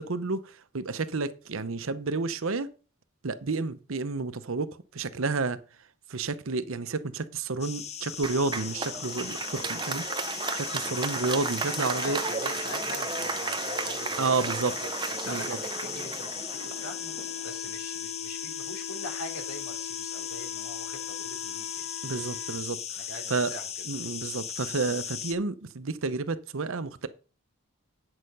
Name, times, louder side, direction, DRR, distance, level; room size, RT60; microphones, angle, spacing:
voice 1, 0.0-2.7 3.2-5.6 6.1-10.1 10.5-12.2 14.2-14.7 15.3-15.6 22.0-22.8 23.3-23.5 23.9-27.1, right 3 dB, 65° right, 0.8 m, -30 dB
sound 1, 7.6-25.3, left 8 dB, 30° left, 0.6 m, -37 dB
Applause, 8.2-17.6, right 4 dB, 20° right, 0.6 m, -34 dB
voice 2, 11.6-17.2 17.4-21.9 22.9-23.8, left 1 dB, 90° left, 3.0 m, -43 dB
Wind instrument woodwind instrument, 16.5-22.6, left 10 dB, 75° left, 0.8 m, -42 dB
8.9 x 6.6 x 5.4 m
head